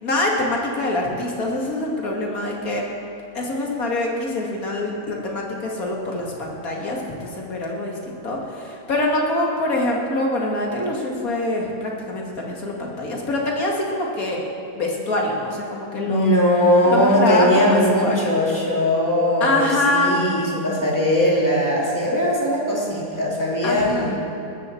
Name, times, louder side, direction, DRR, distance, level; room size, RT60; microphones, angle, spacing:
voice 1, 0.0-2.8 3.3-14.4 14.8-16.3 16.9-18.3 19.4-20.1 23.6-24.1, left 2 dB, 55° left, -1 dB, 2.5 m, -24 dB
voice 2, 16.1-24.1, equal, 10° left, -5 dB, 3.1 m, -20 dB
19.0 x 14.0 x 4.5 m, 2.7 s
omnidirectional pair, 1.8 m